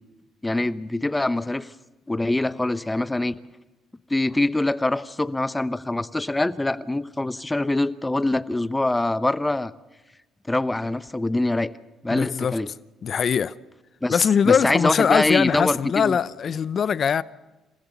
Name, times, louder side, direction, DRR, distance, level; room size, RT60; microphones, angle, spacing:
voice 1, 0.4-1.7 2.1-3.3 4.1-9.7 10.5-11.7 12.0-12.7 14.0-16.2, left 2 dB, 15° left, 0.9 m, -24 dB
voice 2, 12.1-12.5 13.0-13.5 14.1-17.2, left 7 dB, 50° left, 0.7 m, -21 dB
27.5 x 15.0 x 7.1 m
hypercardioid pair, 60°, 0 cm